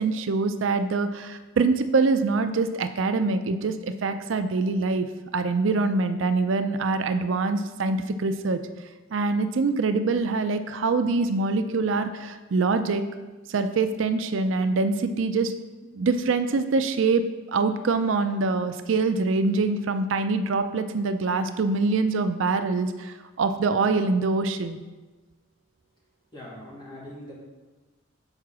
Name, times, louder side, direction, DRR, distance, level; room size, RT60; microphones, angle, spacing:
voice 1, 0.0-5.1 5.3-8.6 9.1-13.0 13.5-15.5 15.9-17.2 17.5-24.8, right 3 dB, 70° right, 9 dB, 0.4 m, -24 dB
voice 2, 26.3-27.3, left 1 dB, 25° left, -6 dB, 2.5 m, -41 dB
6.5 x 4.6 x 6.0 m, 1.2 s
head